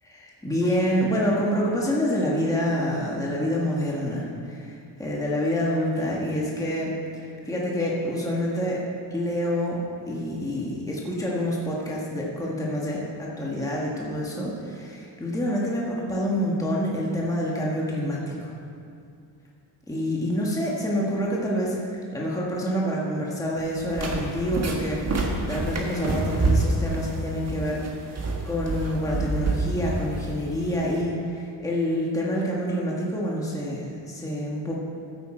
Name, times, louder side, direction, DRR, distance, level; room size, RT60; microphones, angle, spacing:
voice 1, 0.0-4.7 5.0-8.8 9.1-9.8 10.1-18.6 19.9-21.8 22.1-27.8 28.4-34.8, equal, 5° left, -4 dB, 1.6 m, -27 dB
sound 1, 23.6-31.0, right 2 dB, 35° right, 1.6 m, -28 dB
15.0 x 8.1 x 4.5 m, 2.4 s
cardioid pair, 140°, 46 cm